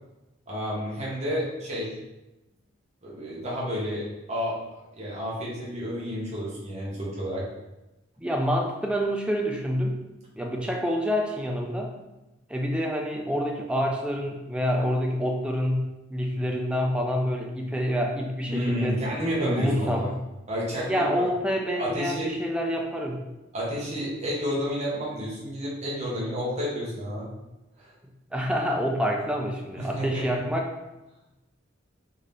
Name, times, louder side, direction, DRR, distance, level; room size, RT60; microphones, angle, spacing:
voice 1, 0.5-1.9 3.0-4.6 4.9-7.5 18.5-20.1 20.5-21.2 21.8-22.3 23.5-27.3 27.8-27.9 29.8-30.3, equal, 35° right, -7 dB, 0.9 m, -30 dB
voice 2, 8.2-10.0 10.3-11.9 12.5-19.0 19.4-20.2 20.9-23.2 28.3-30.7, equal, 5° right, 1 dB, 0.4 m, -27 dB
3.7 x 2.7 x 3.2 m, 1.0 s
head